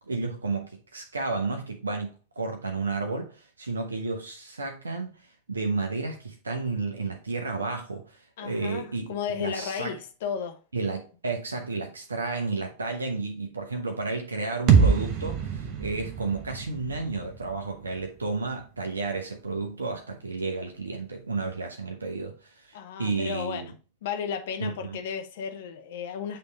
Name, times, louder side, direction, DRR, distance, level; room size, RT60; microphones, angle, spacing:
voice 1, 0.1-5.1 5.5-9.1 9.4-10.0 10.7-23.7 24.6-25.0, right 3 dB, 75° right, 0.8 m, -32 dB
voice 2, 8.4-10.6 22.7-23.7 24.0-26.4, left 7 dB, 55° left, 0.9 m, -34 dB
sound 1, 14.7-18.6, right 6 dB, 40° right, 1.0 m, -25 dB
8.4 x 3.3 x 4.0 m
figure-of-eight pair, 90°, 0 cm